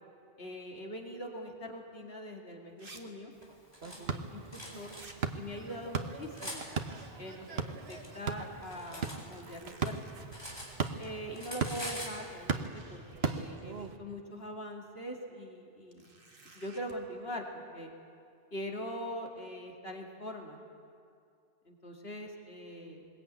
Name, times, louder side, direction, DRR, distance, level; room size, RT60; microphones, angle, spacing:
voice 1, 0.4-3.3 4.0-4.9 5.3-6.7 7.2-10.0 11.0-16.1 16.5-17.9 18.5-20.6 21.7-23.1, equal, 75° left, 1 dB, 2.7 m, -42 dB
sound 1, 2.0-2.1 2.8-3.0 3.3-3.4 4.8-5.2 6.8-7.7 8.1-8.2 9.0-10.7 11.9-12.0 12.6-13.6 15.9-17.0, right 3 dB, 60° right, 2.0 m, -56 dB
Cutlery silverware, 3.4-4.0 4.5-5.0 5.7-6.6 7.5-9.2 9.5-11.1 11.3-12.2, equal, 25° left, 4.2 m, -44 dB
sound 2, 3.8-14.0, right 5 dB, 75° right, 1.3 m, -38 dB
21.5 x 20.5 x 9.0 m, 2.4 s
omnidirectional pair, 1.0 m